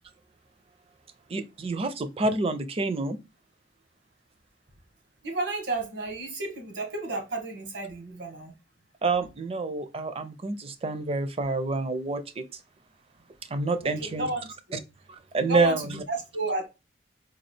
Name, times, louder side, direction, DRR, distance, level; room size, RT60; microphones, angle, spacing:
voice 1, 1.3-3.2 9.0-12.4 13.5-14.3 14.7-14.8 15.1-16.0, right 3 dB, 35° right, 0.5 m, -28 dB
voice 2, 5.2-8.5 14.0-14.4 14.7-14.8 15.5-16.7, right 2 dB, 85° right, 1.5 m, -32 dB
3.9 x 2.4 x 3.1 m
head